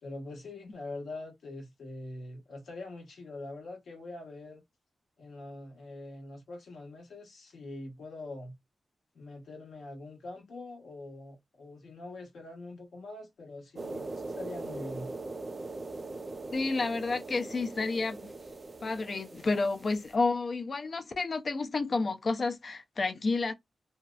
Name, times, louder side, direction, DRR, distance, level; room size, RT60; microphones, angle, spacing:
voice 1, 0.0-4.6 5.2-8.5 9.1-15.1, left 2 dB, 75° left, 1.1 m, -44 dB
sound 1, 13.8-20.1, right 3 dB, 40° right, 0.5 m, -41 dB
voice 2, 16.5-18.3 18.8-23.5, left 3 dB, 50° left, 0.4 m, -30 dB
2.7 x 2.0 x 2.3 m
cardioid pair, 65°, 0 cm